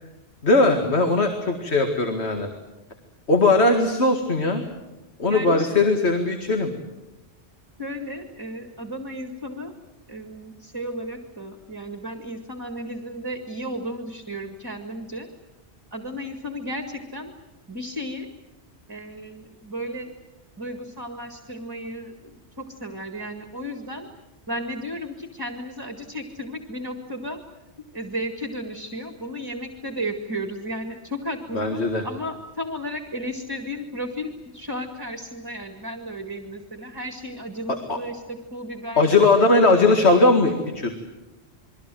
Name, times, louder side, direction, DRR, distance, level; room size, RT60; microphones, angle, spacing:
voice 1, 0.4-2.5 3.3-4.6 5.2-6.7 31.5-32.0 37.9-38.0 39.0-40.9, left 2 dB, 75° left, 5 dB, 2.3 m, -19 dB
voice 2, 5.2-5.7 7.8-9.7 10.1-15.3 15.9-17.3 17.7-18.3 18.9-20.1 20.6-24.1 24.5-27.4 27.9-39.2, equal, 20° right, 6 dB, 1.9 m, -34 dB
28.5 x 22.0 x 7.7 m, 1.1 s
omnidirectional pair, 1.1 m